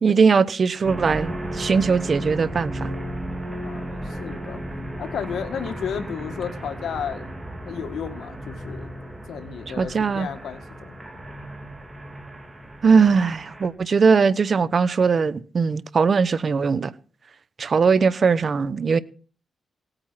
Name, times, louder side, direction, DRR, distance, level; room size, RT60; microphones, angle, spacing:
voice 1, 0.0-2.9 9.8-10.3 12.8-16.9 17.6-19.0, right 5 dB, 50° right, 0.9 m, -20 dB
sound 1, 0.8-13.7, right 1 dB, 15° right, 3.9 m, -34 dB
voice 2, 3.6-4.6 5.0-7.2 7.7-8.9 9.3-10.9, left 7 dB, 80° left, 1.9 m, -33 dB
18.0 x 9.0 x 5.9 m
cardioid pair, 90°, 0 cm